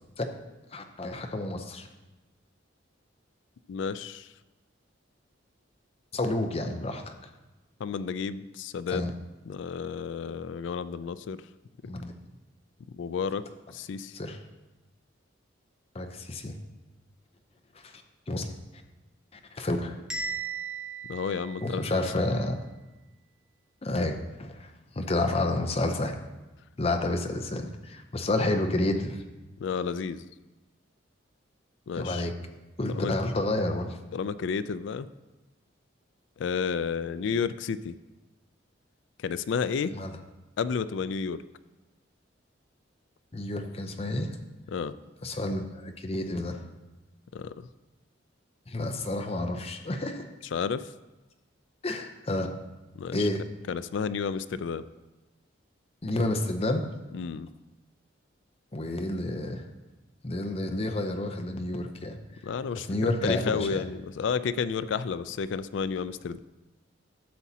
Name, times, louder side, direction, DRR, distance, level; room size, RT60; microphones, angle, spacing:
voice 1, 0.7-1.9 6.1-7.1 8.9-9.1 11.8-12.1 14.1-14.4 15.9-16.5 17.7-18.5 19.3-20.0 21.6-22.6 23.8-24.7 24.9-26.2 26.8-29.2 32.0-32.3 32.8-34.0 39.9-40.2 43.3-44.4 45.2-46.6 48.7-50.3 51.8-52.5 53.1-53.4 56.0-56.9 58.7-59.6 60.2-62.2 62.8-63.8, left 2 dB, 30° left, 5 dB, 0.6 m, -30 dB
voice 2, 3.7-4.3 7.8-9.0 9.5-11.4 12.9-13.4 13.7-14.1 21.1-22.0 29.6-30.3 31.9-32.3 32.9-33.1 34.1-35.1 36.4-38.0 39.2-39.9 40.6-41.4 44.7-44.9 47.3-47.7 50.5-50.9 53.0-53.3 53.7-54.8 57.1-57.5 62.4-66.4, left 6 dB, 70° left, 14 dB, 0.3 m, -31 dB
Bell, 20.1-22.1, right 4 dB, 5° right, 1.1 m, -37 dB
12.0 x 7.2 x 2.8 m, 1.1 s
head